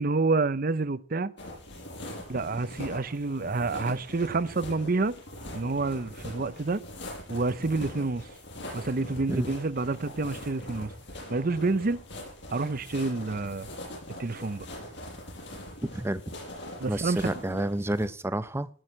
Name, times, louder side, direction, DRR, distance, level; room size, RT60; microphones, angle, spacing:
voice 1, 0.0-1.3 2.3-5.1 5.5-6.8 7.3-8.3 8.7-10.9 11.3-12.0 12.5-13.7 14.2-14.7 16.8-17.3, right 3 dB, 50° right, 0.7 m, -28 dB
sound 1, 1.4-18.0, left 1 dB, 65° left, 7.4 m, -42 dB
voice 2, 16.9-18.7, right 1 dB, 15° right, 0.7 m, -29 dB
18.5 x 6.4 x 7.5 m
head